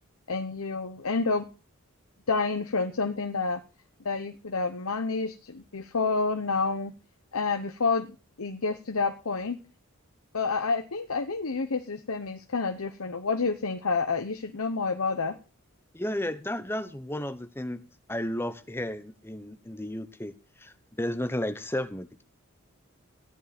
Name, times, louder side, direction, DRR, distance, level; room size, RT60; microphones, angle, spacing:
voice 1, 0.3-1.4 2.3-3.6 4.0-6.9 7.3-8.1 8.4-9.6 10.3-15.4, left 4 dB, 85° left, 8 dB, 1.0 m, -29 dB
voice 2, 15.9-17.8 18.1-20.3 20.6-22.2, left 1 dB, 10° left, 10 dB, 1.1 m, -33 dB
14.0 x 10.0 x 4.3 m, 0.33 s
head